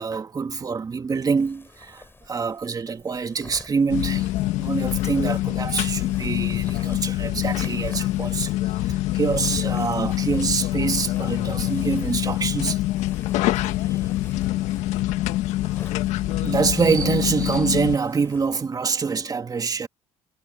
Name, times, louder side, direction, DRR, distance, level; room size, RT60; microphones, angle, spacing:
voice 1, 0.0-4.3 4.6-12.8 13.9-14.0 16.4-19.9, right 5 dB, 30° right, 2.0 m, -25 dB
sound 1, 1.4-18.6, left 3 dB, 20° left, 5.1 m, -48 dB
sound 2, 3.9-18.0, left 16 dB, 75° left, 1.4 m, -25 dB
supercardioid pair, 80°, 12 cm